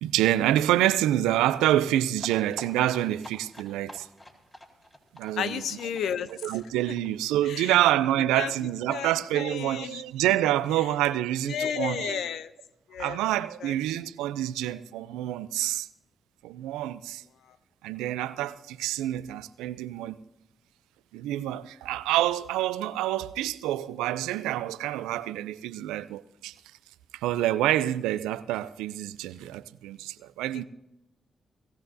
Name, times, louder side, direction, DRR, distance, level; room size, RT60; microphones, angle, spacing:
voice 1, 0.0-4.1 5.1-5.6 6.4-12.2 13.0-15.9 16.4-17.2 17.8-20.2 21.1-26.5 27.1-30.6, right 13 dB, 85° right, 0.4 m, -27 dB
sound 1, 2.1-7.7 8.0-8.1 8.3-8.4 8.7-8.8, left 1 dB, 20° left, 3.8 m, -47 dB
voice 2, 5.4-6.3 7.4-7.7 8.4-8.5 8.9-10.0 11.5-12.5 12.9-13.2 13.6-13.7, left 8 dB, 75° left, 0.7 m, -32 dB
20.0 x 15.0 x 2.7 m
hypercardioid pair, 40°, 0 cm